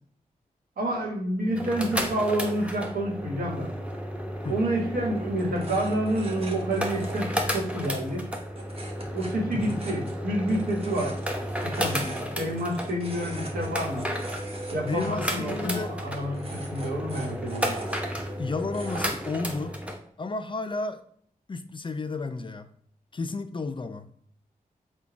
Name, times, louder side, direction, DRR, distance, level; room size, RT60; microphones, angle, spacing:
voice 1, 0.8-3.7 4.5-8.3 9.1-11.2 11.6-14.1 14.7-17.8, right 1 dB, 75° right, 1.2 m, -29 dB
sound 1, 1.4-20.0, equal, 10° right, 0.8 m, -33 dB
sound 2, 4.5-19.2, right 2 dB, 40° right, 0.9 m, -44 dB
voice 2, 14.9-16.0 18.4-19.8 20.2-21.0 21.5-22.7 23.1-24.1, left 3 dB, 35° left, 0.4 m, -32 dB
3.9 x 2.2 x 4.5 m
cardioid pair, 55°, 15 cm